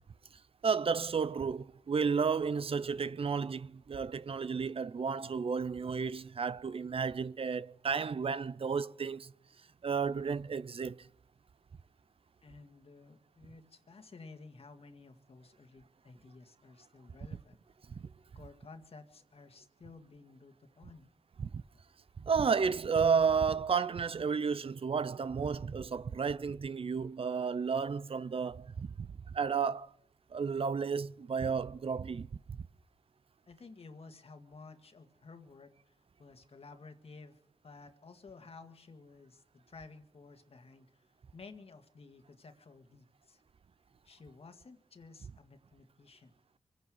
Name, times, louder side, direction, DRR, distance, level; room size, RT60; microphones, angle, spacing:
voice 1, 0.6-9.3 9.8-11.1 17.9-18.1 21.4-21.6 22.2-29.9 30.3-32.6, right 6 dB, 55° right, 0.6 m, -32 dB
voice 2, 12.4-17.6 18.4-21.1 33.5-43.4 44.0-46.3, left 4 dB, 60° left, 1.8 m, -54 dB
24.0 x 9.6 x 6.3 m
cardioid pair, 55°, 11 cm